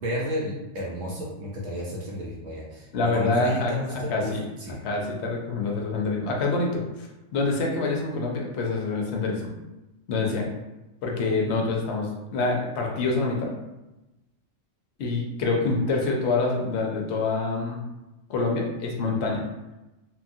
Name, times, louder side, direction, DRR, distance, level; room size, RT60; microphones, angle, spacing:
voice 1, 0.0-2.9 3.1-4.3 4.6-4.8, equal, 60° right, -4 dB, 0.9 m, -32 dB
voice 2, 2.9-4.5 4.8-9.5 10.1-10.5 11.0-13.5 15.0-17.8 18.3-19.4, left 3 dB, 65° left, 0 dB, 0.8 m, -26 dB
2.9 x 2.3 x 2.6 m, 1.0 s
omnidirectional pair, 1.4 m